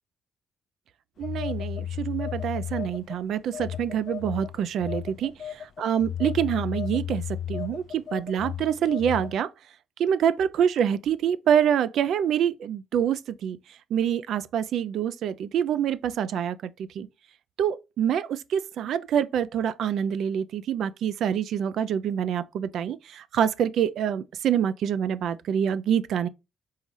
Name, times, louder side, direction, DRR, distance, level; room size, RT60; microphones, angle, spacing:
Telephone, 1.2-3.2 3.5-9.4, left 10 dB, 60° left, 0.3 m, -34 dB
voice 1, 1.2-5.3 5.8-7.2 7.5-9.5 10.0-13.6 13.9-16.6 17.0-17.1 17.6-26.3, right 9 dB, 75° right, 0.3 m, -26 dB
4.1 x 3.7 x 3.1 m
cardioid pair, 90°, 0 cm